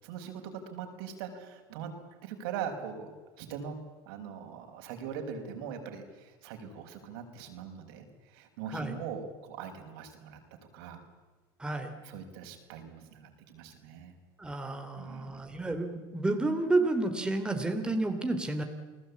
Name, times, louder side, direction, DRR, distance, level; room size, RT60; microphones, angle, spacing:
voice 1, 0.0-1.9 2.2-3.1 3.4-3.8 4.0-10.4 10.7-11.0 12.0-14.2 14.9-15.4, right 7 dB, 80° right, 5 dB, 5.2 m, -41 dB
voice 2, 11.6-11.9 14.4-18.6, right 2 dB, 5° right, 5 dB, 3.0 m, -30 dB
29.5 x 19.5 x 8.5 m, 1.3 s
supercardioid pair, 125°, 12 cm